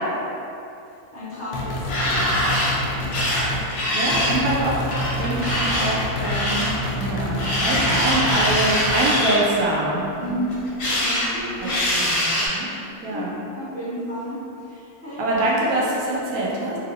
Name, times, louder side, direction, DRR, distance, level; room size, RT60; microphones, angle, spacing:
voice 1, 1.1-3.6 10.2-10.5 10.8-11.8 13.1-15.3, equal, 40° right, -15 dB, 1.2 m, -33 dB
sound 1, 1.5-3.7 4.1-9.1, left 1 dB, 90° left, 1.1 m, -28 dB
sound 2, 1.6-2.7 3.1-4.4 4.9-6.7 7.4-9.4 10.5-11.3 11.6-12.5, left 1 dB, 55° left, 0.8 m, -23 dB
voice 2, 3.9-4.8 5.2-6.7 6.9-10.3 11.6-12.1 12.5-12.7 13.0-13.4 15.2-16.8, right 2 dB, 75° right, -4 dB, 1.1 m, -24 dB
2.9 x 2.8 x 2.6 m, 2.8 s
omnidirectional pair, 1.6 m